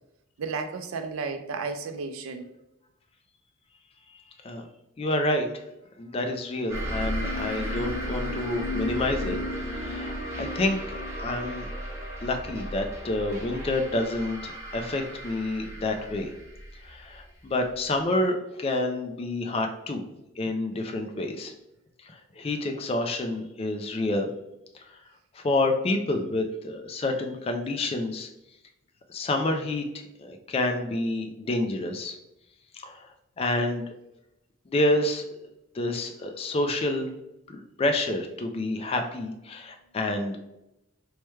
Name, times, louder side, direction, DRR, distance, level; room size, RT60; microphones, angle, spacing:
voice 1, 0.4-2.5, right 4 dB, 80° right, 0.4 m, -33 dB
voice 2, 5.0-5.5 6.0-9.4 9.7-11.7 12.2-16.3 16.8-20.0 20.4-21.5 22.0-24.3 24.7-25.0 25.3-28.3 29.1-29.9 30.2-32.2 32.7-33.9 34.7-35.2 35.7-37.1 37.5-40.4, left 2 dB, 25° left, 0.3 m, -28 dB
sound 1, 6.7-17.9, equal, 15° right, 0.7 m, -34 dB
4.6 x 2.1 x 3.1 m
head